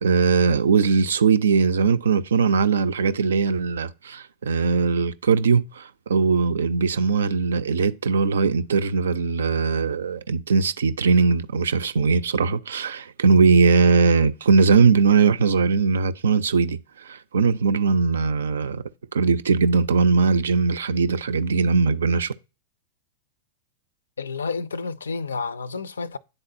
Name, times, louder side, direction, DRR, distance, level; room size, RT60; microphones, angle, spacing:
voice 1, 0.0-18.8 19.1-22.3, right 4 dB, 70° right, 0.4 m, -20 dB
voice 2, 24.2-26.2, left 4 dB, 75° left, 0.4 m, -30 dB
9.8 x 4.0 x 2.5 m
figure-of-eight pair, 95°, 0 cm